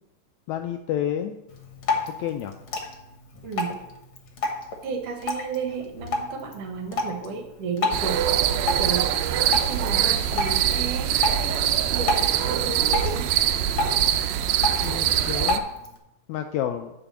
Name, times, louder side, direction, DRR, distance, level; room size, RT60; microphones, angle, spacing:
voice 1, 0.5-1.4 2.2-2.5 14.8-15.6 16.3-16.9, left 10 dB, 85° left, 6 dB, 1.6 m, -29 dB
Drip, 1.5-16.0, left 3 dB, 55° left, 1.5 m, -32 dB
voice 2, 3.4-3.8 4.8-8.2 8.7-9.1 9.4-13.3, right 5 dB, 65° right, 4 dB, 1.6 m, -33 dB
sound 1, 7.9-15.6, right 10 dB, 85° right, 1.5 m, -23 dB
8.7 x 4.9 x 7.0 m, 0.92 s
omnidirectional pair, 3.7 m